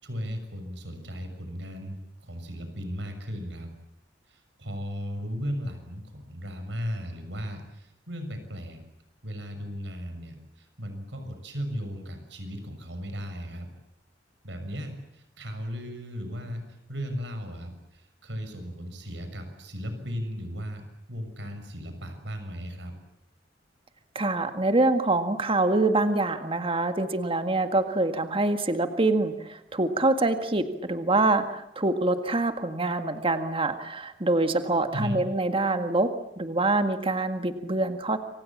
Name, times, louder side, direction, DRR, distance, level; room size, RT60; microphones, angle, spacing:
voice 1, 0.0-3.7 4.3-8.8 9.2-13.7 14.4-16.6 16.9-20.8 21.1-22.9 34.9-35.2, equal, 70° right, 7 dB, 6.5 m, -36 dB
voice 2, 24.2-38.2, right 2 dB, 30° right, 8 dB, 1.9 m, -25 dB
28.0 x 25.5 x 7.5 m, 0.80 s
head